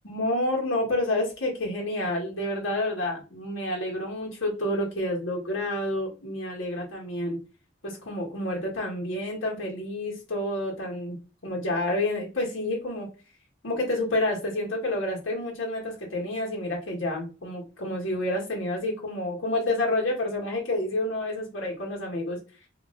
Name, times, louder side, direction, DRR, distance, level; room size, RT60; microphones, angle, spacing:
voice 1, 0.0-7.4 7.8-13.1 13.6-22.4, left 1 dB, 85° left, -2 dB, 1.6 m, -29 dB
3.1 x 2.9 x 3.8 m, 0.32 s
head